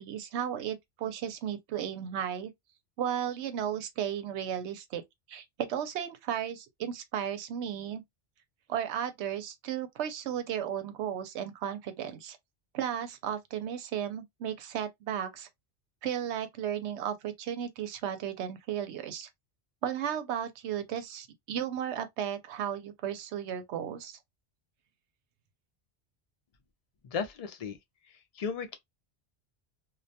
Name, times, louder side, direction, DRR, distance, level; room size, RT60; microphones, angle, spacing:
voice 1, 0.0-2.5 3.0-5.0 5.3-8.0 8.7-12.4 12.7-15.5 16.0-19.3 19.8-24.2, right 9 dB, 85° right, 0.9 m, -34 dB
voice 2, 27.0-27.8 28.1-28.8, left 6 dB, 50° left, 0.5 m, -35 dB
2.3 x 2.2 x 2.6 m
omnidirectional pair, 1.1 m